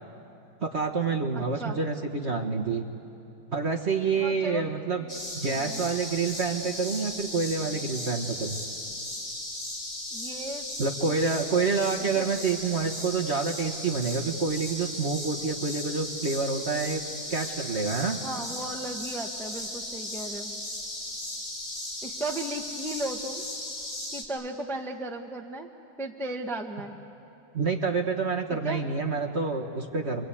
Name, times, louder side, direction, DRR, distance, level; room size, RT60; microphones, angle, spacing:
voice 1, 0.6-2.8 3.5-5.0 5.3-8.6 10.8-17.0 17.3-18.2 27.5-30.2, right 4 dB, 40° right, 2 dB, 1.3 m, -28 dB
voice 2, 1.3-1.8 4.2-5.2 5.5-5.9 10.1-10.7 11.0-11.5 12.0-12.3 18.2-20.6 22.0-23.4 24.1-25.7 26.0-27.0 28.5-28.9, right 2 dB, ahead, 3 dB, 0.9 m, -36 dB
sound 1, 5.1-24.2, left 1 dB, 25° left, 3.0 m, -36 dB
28.5 x 23.5 x 8.5 m, 2.7 s
omnidirectional pair, 2.3 m